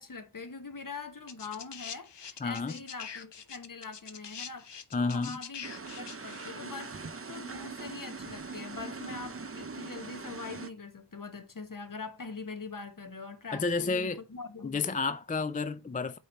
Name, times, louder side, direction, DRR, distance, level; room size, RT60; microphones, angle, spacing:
voice 1, 0.0-6.9 7.3-14.9, left 4 dB, 45° left, 1.1 m, -43 dB
sound 1, 1.3-6.5 7.5-7.6, left 7 dB, 70° left, 0.7 m, -44 dB
voice 2, 2.4-2.8 4.9-5.4 13.5-14.2 14.6-16.2, left 4 dB, 20° left, 0.4 m, -31 dB
sound 2, 5.6-10.7, right 4 dB, 30° right, 0.6 m, -42 dB
8.3 x 2.9 x 4.3 m
wide cardioid pair, 55°, 44 cm